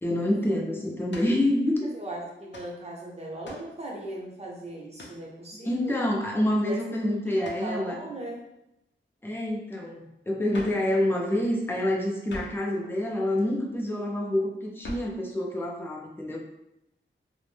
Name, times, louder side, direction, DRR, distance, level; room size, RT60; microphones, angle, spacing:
voice 1, 0.0-1.9 5.6-8.0 9.2-16.4, left 1 dB, 10° left, -2 dB, 0.5 m, -27 dB
sound 1, 1.1-1.4 2.5-2.7 3.4-3.7 5.0-5.2 7.4-7.7 10.5-10.9 12.3-12.7 14.8-15.2, left 1 dB, 60° left, 0.6 m, -42 dB
voice 2, 1.9-6.0 6.7-6.8 7.3-8.5, right 1 dB, 30° right, -2 dB, 0.7 m, -38 dB
2.5 x 2.0 x 3.2 m, 0.86 s
wide cardioid pair, 80°, 21 cm